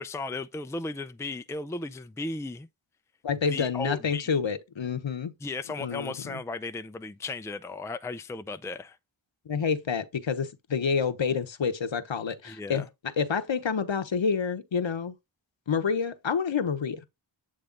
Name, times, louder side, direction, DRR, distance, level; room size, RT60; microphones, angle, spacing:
voice 1, 0.0-2.7 3.5-4.3 5.4-9.0 12.5-12.8, left 3 dB, 5° left, 0.5 m, -35 dB
voice 2, 3.2-5.3 5.8-6.4 9.5-12.9 13.2-15.2 15.7-17.1, left 6 dB, 65° left, 1.0 m, -28 dB
8.7 x 3.2 x 3.8 m
wide cardioid pair, 45°, 49 cm